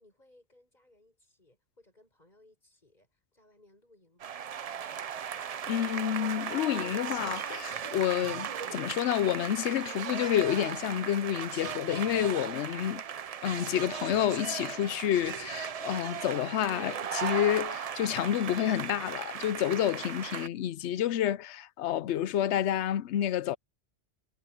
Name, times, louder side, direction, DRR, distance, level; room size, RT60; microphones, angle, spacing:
voice 1, 0.0-4.4, left 1 dB, 40° left, 6.8 m, -63 dB
sound 1, 4.2-20.5, right 8 dB, 50° right, 0.5 m, -37 dB
voice 2, 5.7-13.0 13.4-23.6, left 11 dB, 85° left, 0.9 m, -29 dB
omnidirectional pair, 1.1 m